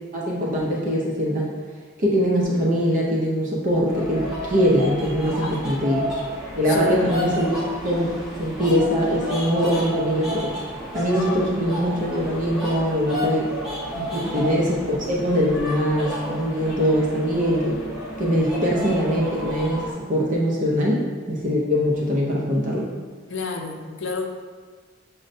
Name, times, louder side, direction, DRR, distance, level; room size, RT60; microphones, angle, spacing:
voice 1, 0.1-1.5 2.0-6.1 6.6-10.5 10.9-13.5 14.1-17.8 18.2-22.9, equal, 40° right, -3 dB, 0.5 m, -22 dB
sound 1, 3.9-19.9, equal, 5° right, 0.8 m, -32 dB
voice 2, 6.7-7.3 13.9-14.4 23.3-24.3, left 4 dB, 65° left, 2 dB, 0.5 m, -30 dB
6.2 x 2.1 x 2.6 m, 1.5 s
head